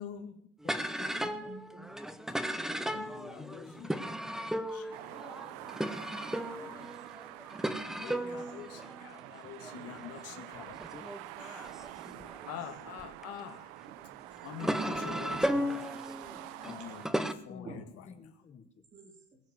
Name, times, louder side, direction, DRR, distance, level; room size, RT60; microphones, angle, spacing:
voice 1, 0.0-0.5 1.1-1.2 2.9-3.9 4.2-6.9 7.9-10.8 11.4-11.8 12.5-13.7 14.4-15.8 16.6-18.3, left 9 dB, 40° left, 4 dB, 2.1 m, -47 dB
voice 2, 0.6-1.5 3.4-3.7 8.3-8.5 10.9-11.1 17.5-18.8, left 5 dB, 20° left, 9 dB, 1.0 m, -50 dB
sound 1, 0.6-13.2 13.9-17.3, equal, ahead, 0.6 m, -36 dB
voice 3, 1.4-2.2 8.0-8.5 8.8-8.9 11.8-12.5 13.2-13.3 14.3-14.4 14.9-15.2 16.6-17.3 17.6-17.8 18.9-19.4, right 3 dB, 20° right, -1 dB, 3.3 m, -51 dB
sound 2, 4.9-17.1, right 18 dB, 60° right, 0.7 m, -47 dB
21.0 x 7.3 x 7.7 m, 0.65 s
cardioid pair, 165°, 38 cm